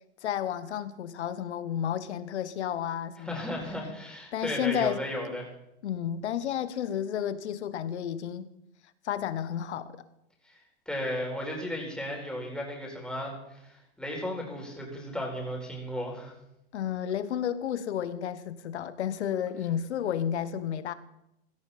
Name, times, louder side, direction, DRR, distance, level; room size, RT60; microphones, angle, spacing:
voice 1, 0.2-3.5 4.3-5.0 5.3-5.4 5.8-8.5 9.0-9.9 16.7-20.9, left 9 dB, 80° left, 1.2 m, -31 dB
voice 2, 3.2-5.5 10.5-10.6 10.9-16.3, left 1 dB, ahead, 4.4 m, -35 dB
16.5 x 13.5 x 4.2 m
hypercardioid pair, 120°, 34 cm